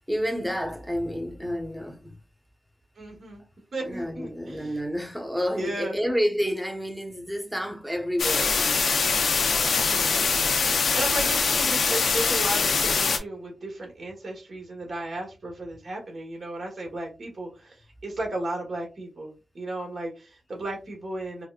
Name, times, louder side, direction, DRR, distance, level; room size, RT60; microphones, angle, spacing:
voice 1, 0.1-2.1 3.8-9.7, equal, 5° right, 1.0 m, -30 dB
voice 2, 3.0-3.4 3.7-4.8 5.5-6.0 9.8-10.3 10.6-21.5, right 1 dB, 60° right, 1.3 m, -35 dB
sound 1, 8.2-13.2, left 5 dB, 80° left, 0.7 m, -23 dB
4.6 x 2.1 x 2.4 m
cardioid pair, 50°, 0 cm